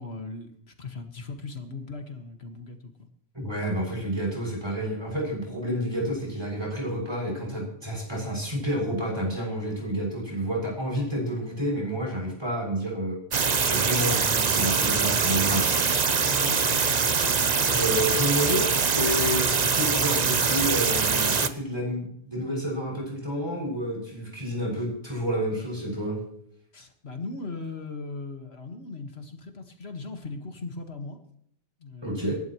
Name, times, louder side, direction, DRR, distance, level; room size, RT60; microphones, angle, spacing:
voice 1, 0.0-3.1 16.2-17.0 26.7-31.2 31.8-32.3, left 3 dB, 80° left, 5 dB, 2.0 m, -38 dB
voice 2, 3.3-13.2 13.6-15.8 17.7-26.2 32.0-32.4, equal, 25° right, -2 dB, 7.0 m, -29 dB
sound 1, 13.3-21.5, right 5 dB, 45° right, 0.9 m, -23 dB
26.5 x 12.0 x 3.1 m, 0.69 s
omnidirectional pair, 1.1 m